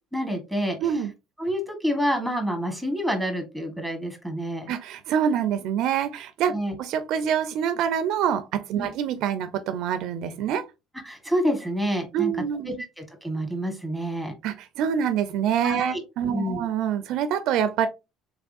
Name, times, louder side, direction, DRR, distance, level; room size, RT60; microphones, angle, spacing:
voice 1, 0.1-0.8 1.4-4.7 6.5-6.7 8.7-8.9 11.0-12.3 12.7-14.3 15.6-16.7, equal, ahead, 1.4 m, -28 dB
voice 2, 0.8-1.1 4.7-10.6 12.1-12.8 14.4-17.9, right 8 dB, 70° right, 0.5 m, -26 dB
3.4 x 3.4 x 2.6 m
supercardioid pair, 85°, 0 cm